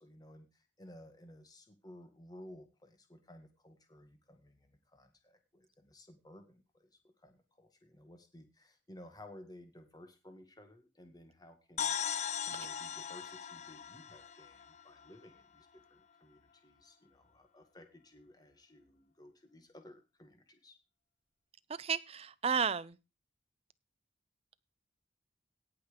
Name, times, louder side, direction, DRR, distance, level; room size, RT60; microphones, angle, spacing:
voice 1, 0.0-12.0 12.4-20.7, left 1 dB, 20° left, 1.7 m, -56 dB
sound 1, 11.8-15.4, left 8 dB, 35° left, 0.5 m, -39 dB
voice 2, 21.8-23.0, right 6 dB, 30° right, 0.5 m, -32 dB
17.5 x 5.9 x 5.1 m
head